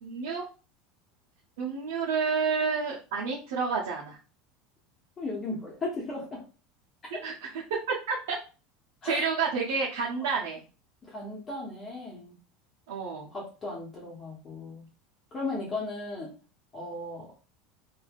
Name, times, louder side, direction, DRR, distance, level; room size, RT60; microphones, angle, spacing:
voice 1, 0.0-0.4 1.6-4.2 7.1-7.6 7.9-8.4 9.0-10.6 12.9-13.3, right 5 dB, 85° right, -4 dB, 0.8 m, -30 dB
voice 2, 5.2-6.4 9.0-9.3 10.2-10.3 11.1-12.3 13.3-14.8 15.3-16.3 16.7-17.3, left 2 dB, 30° left, -4 dB, 1.0 m, -36 dB
3.3 x 2.6 x 2.4 m, 0.34 s
supercardioid pair, 115°, 0 cm